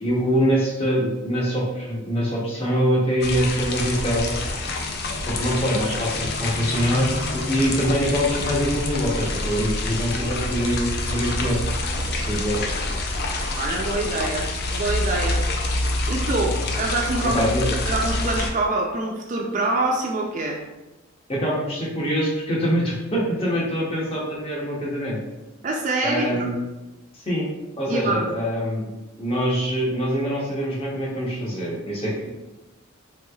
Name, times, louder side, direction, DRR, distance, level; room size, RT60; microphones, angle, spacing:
voice 1, 0.0-4.3 5.3-11.6 12.3-12.6 17.3-17.7 21.3-25.2 26.0-26.5 27.1-27.5 27.8-28.9 29.2-32.3, equal, 25° left, -5 dB, 0.7 m, -24 dB
sound 1, 3.2-18.5, left 2 dB, 50° left, 0.4 m, -27 dB
voice 2, 13.6-15.4 16.1-20.6 25.6-26.5 27.9-28.3, right 2 dB, 35° right, 0 dB, 0.3 m, -25 dB
3.4 x 3.0 x 2.3 m, 1.0 s
head